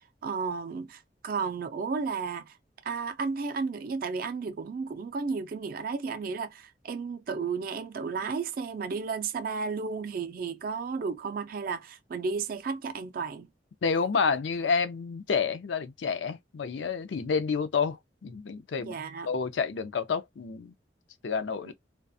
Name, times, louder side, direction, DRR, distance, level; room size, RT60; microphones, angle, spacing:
voice 1, 0.2-2.5 2.8-13.5 18.8-19.3 21.7-21.8, right 5 dB, 50° right, 0.3 m, -33 dB
voice 2, 13.8-18.9 19.3-20.7 21.2-21.7, left 5 dB, 80° left, 0.4 m, -29 dB
2.4 x 2.2 x 2.6 m
head